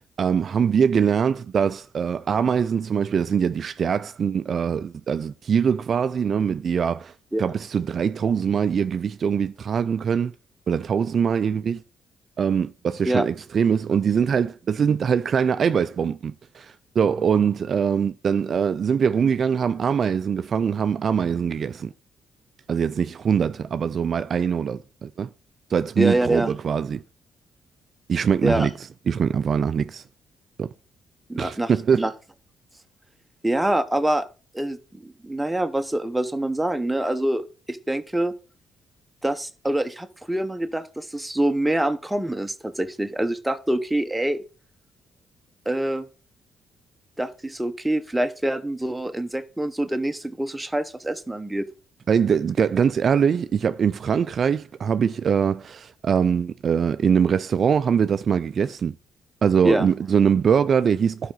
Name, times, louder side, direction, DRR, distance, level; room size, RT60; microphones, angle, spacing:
voice 1, 0.2-7.1 7.4-10.3 10.7-11.8 12.4-21.9 22.7-25.3 25.7-27.0 28.1-28.7 29.1-30.0 30.6-30.7 31.4-32.1 52.1-58.9 59.4-61.3, right 7 dB, 50° right, 0.3 m, -22 dB
voice 2, 26.0-26.5 28.4-28.7 31.3-31.7 32.0-32.1 33.4-34.3 34.5-38.3 39.2-44.4 45.7-46.1 47.2-51.7 59.6-59.9, right 1 dB, 5° right, 0.8 m, -25 dB
11.0 x 4.9 x 3.8 m
cardioid pair, 90°, 0 cm